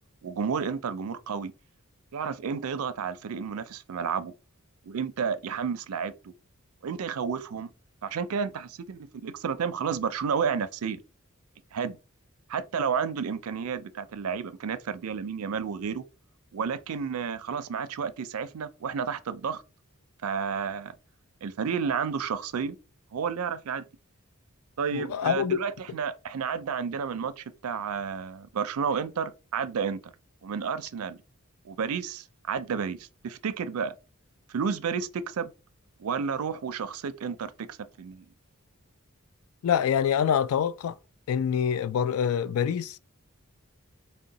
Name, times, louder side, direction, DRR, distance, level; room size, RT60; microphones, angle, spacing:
voice 1, 0.2-1.5 2.1-4.3 4.9-6.3 6.8-7.7 8.0-11.0 11.7-12.0 12.5-16.0 16.5-19.6 20.2-20.9 21.4-22.8 23.1-23.8 24.8-30.1 30.4-31.2 31.6-33.9 34.5-35.5 36.0-38.3, right 6 dB, 75° right, 0.4 m, -31 dB
voice 2, 24.9-25.6 39.6-41.0 41.3-43.0, left 8 dB, 70° left, 0.3 m, -25 dB
3.6 x 2.1 x 3.9 m
head